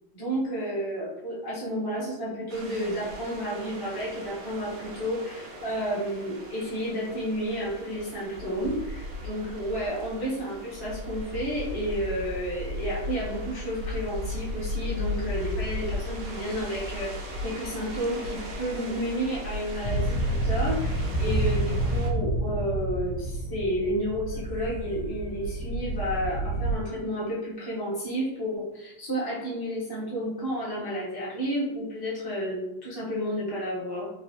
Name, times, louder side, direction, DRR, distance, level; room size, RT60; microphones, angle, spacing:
voice 1, 0.1-34.1, equal, 20° left, -6 dB, 0.7 m, -31 dB
sound 1, 2.5-22.1, left 2 dB, 80° right, 1.4 m, -36 dB
sound 2, 19.8-26.8, right 1 dB, 85° left, 1.6 m, -29 dB
4.0 x 2.6 x 2.9 m, 0.90 s
omnidirectional pair, 2.3 m